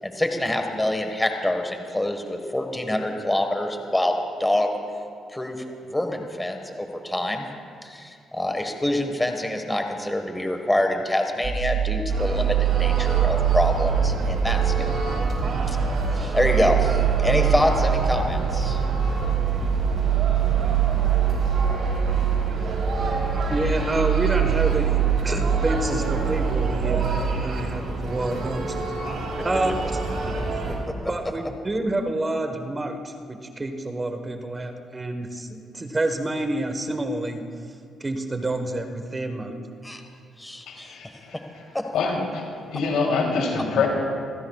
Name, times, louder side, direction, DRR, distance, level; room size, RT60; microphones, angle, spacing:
voice 1, 0.0-4.7 5.3-7.5 7.8-14.9 15.7-15.8 16.1-18.8 31.0-31.1 39.8-40.0 40.4-40.9, left 1 dB, 10° left, 4 dB, 1.6 m, -26 dB
sound 1, 11.4-27.4, right 9 dB, 45° right, 1.6 m, -24 dB
sound 2, 12.1-30.8, right 2 dB, 65° right, 3.8 m, -30 dB
voice 2, 23.5-28.7 29.4-30.4 31.1-37.4 38.0-39.6, right 1 dB, 25° right, 5 dB, 1.3 m, -28 dB
voice 3, 40.7-42.4 42.7-43.9, left 4 dB, 85° left, -1 dB, 3.1 m, -26 dB
27.0 x 15.0 x 2.4 m, 2.2 s
cardioid pair, 90°, 0 cm